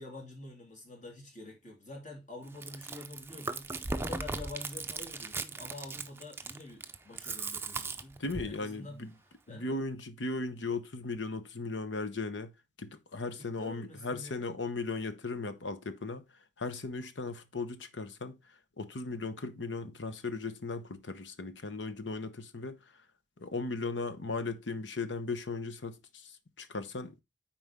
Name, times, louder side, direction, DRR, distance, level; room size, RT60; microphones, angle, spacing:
voice 1, 0.0-3.7 3.9-9.0 9.5-9.8 13.4-14.4, left 2 dB, 40° left, 2.9 m, -47 dB
Chewing mastication, 2.5-8.6, right 3 dB, 15° right, 0.5 m, -38 dB
voice 2, 8.2-9.1 9.5-12.5 12.8-16.2 16.6-18.4 18.8-22.8 23.4-27.1, left 3 dB, 85° left, 0.9 m, -37 dB
9.5 x 4.3 x 3.5 m
head